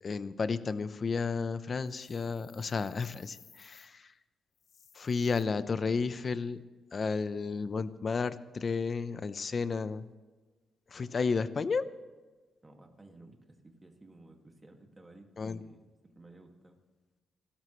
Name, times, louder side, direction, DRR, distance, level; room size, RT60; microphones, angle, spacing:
voice 1, 0.0-4.1 4.9-6.6 6.9-10.1 10.9-11.8 15.4-15.6, left 4 dB, 40° left, 13 dB, 0.8 m, -32 dB
sound 1, 1.8-3.9 4.5-5.4, left 7 dB, 65° left, 1.4 m, -59 dB
voice 2, 12.6-15.3 15.6-16.8, right 2 dB, 20° right, 2 dB, 2.1 m, -55 dB
30.0 x 13.0 x 3.2 m, 1.3 s
cardioid pair, 120°, 0 cm